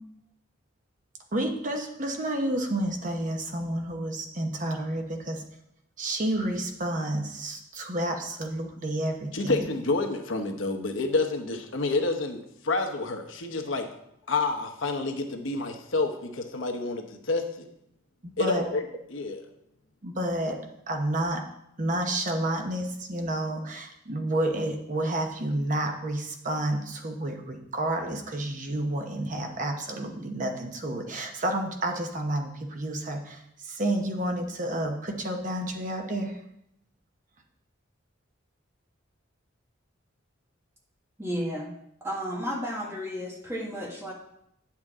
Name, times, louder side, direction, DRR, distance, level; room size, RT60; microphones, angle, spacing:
voice 1, 1.3-5.4 6.0-9.6 18.2-18.7 20.0-20.6 20.9-21.4 21.8-36.4, right 1 dB, 40° right, 3 dB, 1.0 m, -30 dB
voice 2, 9.3-13.9 14.3-17.7 18.4-18.8 19.1-19.4, left 3 dB, 70° left, 5 dB, 1.0 m, -28 dB
voice 3, 41.2-41.7 42.0-44.1, equal, 15° right, -2 dB, 1.6 m, -32 dB
9.2 x 7.2 x 3.7 m, 0.77 s
head